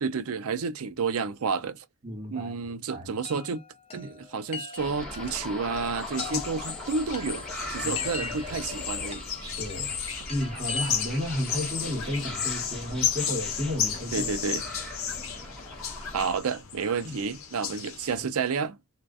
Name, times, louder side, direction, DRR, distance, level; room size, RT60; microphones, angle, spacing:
voice 1, 0.0-1.9 2.3-3.6 3.9-7.4 7.7-9.3 14.1-14.7 16.1-18.8, right 5 dB, 90° right, 0.5 m, -30 dB
voice 2, 2.0-2.6 2.9-3.1 6.3-6.4 7.8-8.3 9.4-10.0 10.3-14.3 17.0-17.1 18.2-18.3, left 1 dB, 40° right, 1.2 m, -33 dB
Chime, 3.2-11.4, left 4 dB, 25° left, 0.4 m, -42 dB
sound 1, 4.8-16.4, left 1 dB, 5° left, 1.0 m, -40 dB
sound 2, 6.0-18.2, left 8 dB, 70° left, 0.7 m, -34 dB
2.3 x 2.2 x 2.4 m
head